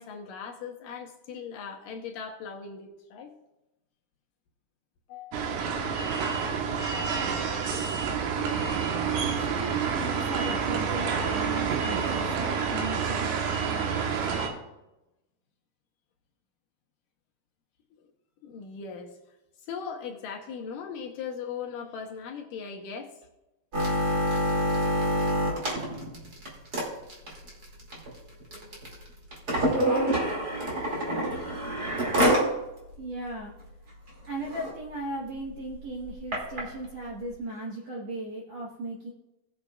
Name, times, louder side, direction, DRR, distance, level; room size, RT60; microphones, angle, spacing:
voice 1, 0.0-3.3 5.1-5.5 6.9-7.3 18.4-19.2 19.7-23.2 28.9-29.0, left 6 dB, 70° left, 2 dB, 2.4 m, -39 dB
sound 1, 5.3-14.5, right 6 dB, 90° right, 3.0 m, -28 dB
voice 2, 9.3-13.4 13.7-14.0 33.0-33.5 34.3-39.1, right 1 dB, 60° right, -3 dB, 1.8 m, -37 dB
sound 2, 23.7-32.5 32.9-33.0 33.3-33.6 34.1-34.2 34.4-34.7 35.4-36.6 37.3-37.4, equal, 30° right, 2.4 m, -27 dB
19.0 x 7.5 x 2.4 m, 0.96 s
omnidirectional pair, 4.4 m